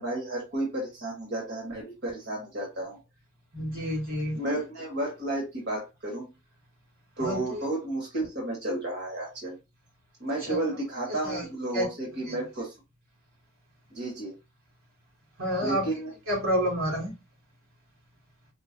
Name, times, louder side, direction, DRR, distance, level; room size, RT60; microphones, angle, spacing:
voice 1, 0.0-3.0 4.3-6.3 7.2-9.5 10.2-12.7 13.9-14.3 15.6-16.1, right 1 dB, 50° right, 1.5 m, -32 dB
voice 2, 3.5-4.4 7.2-7.7 10.5-10.6 11.2-11.5 11.7-11.9 12.3-12.4 15.4-15.9 16.3-17.1, equal, 75° right, 1.7 m, -29 dB
4.8 x 2.3 x 2.5 m
head